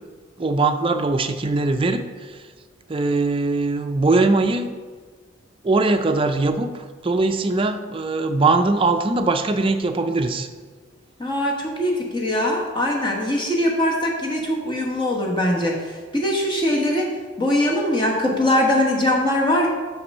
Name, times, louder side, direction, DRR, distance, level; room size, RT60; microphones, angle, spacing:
voice 1, 0.4-2.5 2.9-4.7 5.6-10.5, right 3 dB, 25° right, 7 dB, 0.4 m, -21 dB
voice 2, 11.2-17.1 17.4-19.7, left 1 dB, 25° left, -2 dB, 1.3 m, -21 dB
6.1 x 5.8 x 5.4 m, 1.5 s
head